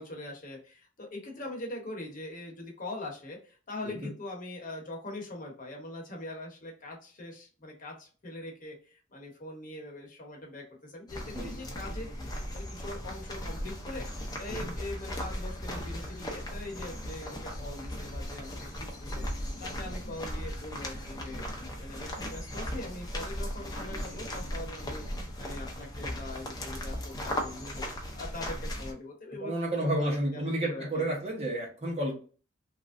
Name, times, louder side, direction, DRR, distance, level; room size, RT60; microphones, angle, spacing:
voice 1, 0.0-19.3 19.6-21.4 21.8-29.5 29.8-31.1, left 2 dB, 45° left, 0 dB, 0.9 m, -42 dB
sound 1, 11.1-28.9, equal, 20° left, 0.6 m, -37 dB
voice 2, 23.9-24.3 29.4-32.1, right 1 dB, 35° right, -1 dB, 1.0 m, -31 dB
3.1 x 2.5 x 2.5 m, 0.37 s
head